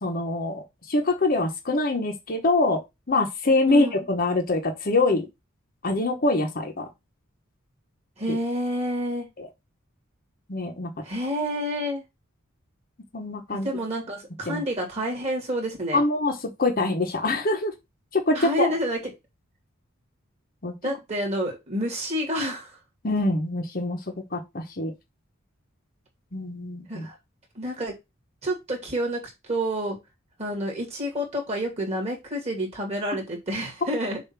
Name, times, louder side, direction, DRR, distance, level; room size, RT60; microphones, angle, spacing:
voice 1, 0.0-2.8 3.1-5.3 5.8-6.9 8.3-8.4 9.4-9.5 10.5-10.9 13.1-13.7 14.5-14.6 15.9-17.7 18.1-18.7 20.6-20.7 23.0-24.9 26.3-27.1, left 2 dB, 45° left, 4 dB, 1.1 m, -24 dB
voice 2, 8.2-9.3 11.0-12.0 13.5-16.0 18.3-19.0 20.8-22.8 26.9-27.1 27.5-27.9 28.4-30.0 30.4-34.2, equal, 30° right, 0 dB, 2.6 m, -29 dB
6.8 x 2.8 x 5.8 m, 0.22 s
head